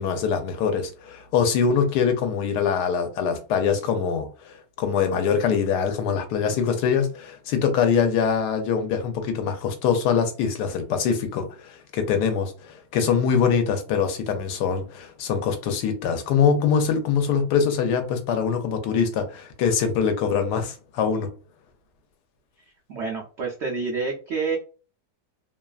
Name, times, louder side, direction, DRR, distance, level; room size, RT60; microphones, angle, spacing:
voice 1, 0.0-21.3, left 6 dB, 75° left, 1.2 m, -23 dB
voice 2, 22.9-24.6, right 4 dB, 85° right, 0.5 m, -28 dB
3.0 x 2.3 x 2.3 m
omnidirectional pair, 1.8 m